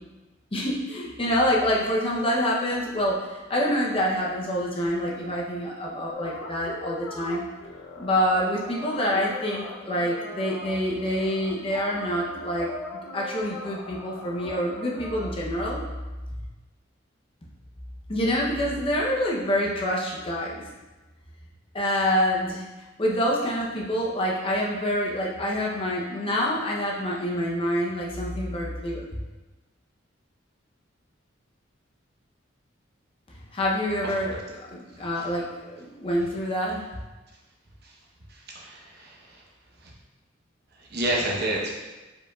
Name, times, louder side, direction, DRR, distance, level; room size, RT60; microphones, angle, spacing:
voice 1, 0.5-7.4 8.0-12.7 13.1-15.8 18.1-20.7 21.7-22.6 23.0-29.1 33.5-36.8, equal, 30° left, -3 dB, 0.6 m, -26 dB
sound 1, 6.1-15.3, left 2 dB, 75° left, 0.6 m, -40 dB
voice 2, 38.3-39.4 39.8-39.9 40.8-41.8, right 1 dB, 55° right, -2 dB, 0.9 m, -30 dB
4.8 x 4.7 x 2.3 m, 1.2 s
head